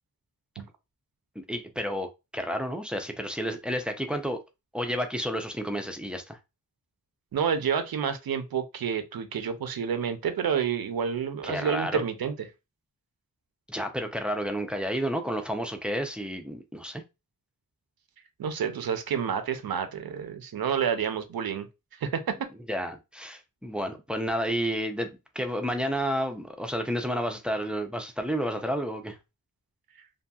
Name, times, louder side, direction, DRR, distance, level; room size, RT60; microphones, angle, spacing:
voice 1, 1.5-2.1 2.3-4.4 4.7-6.4 11.4-12.0 13.7-17.0 22.7-29.2, equal, 5° right, 0.4 m, -31 dB
voice 2, 7.3-12.3 18.4-21.7 22.0-22.3, right 7 dB, 85° right, 0.5 m, -29 dB
2.7 x 2.6 x 2.3 m
wide cardioid pair, 80°, 35 cm